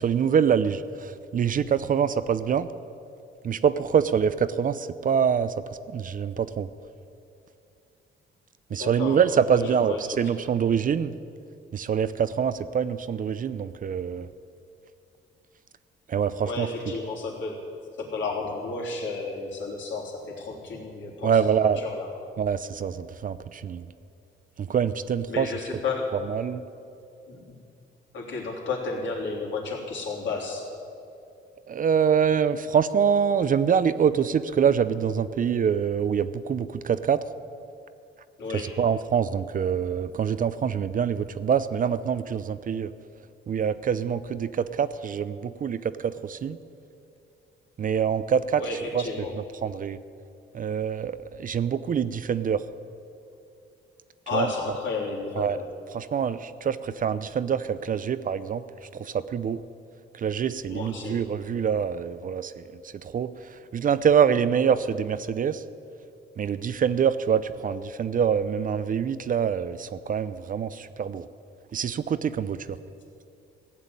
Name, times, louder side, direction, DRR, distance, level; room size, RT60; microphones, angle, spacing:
voice 1, 0.0-2.7 3.4-5.5 5.9-6.7 8.7-11.1 11.7-14.3 16.1-16.7 21.2-21.8 22.4-23.9 24.6-25.5 26.3-26.6 31.7-37.2 38.5-42.9 43.5-46.6 47.8-48.6 48.9-50.0 50.5-52.6 54.3-54.5 55.4-55.6 55.9-58.6 58.9-59.6 60.1-63.3 63.7-65.6 66.4-71.3 71.7-72.8, right 7 dB, 45° right, 14 dB, 0.5 m, -25 dB
voice 2, 8.7-10.3 16.4-17.6 18.0-22.1 25.3-26.2 27.3-27.4 28.1-30.7 38.4-38.8 48.6-49.3 54.3-55.6 60.7-61.2, left 3 dB, 70° left, -2 dB, 3.3 m, -32 dB
15.5 x 7.3 x 9.6 m, 2.6 s
cardioid pair, 90°, 20 cm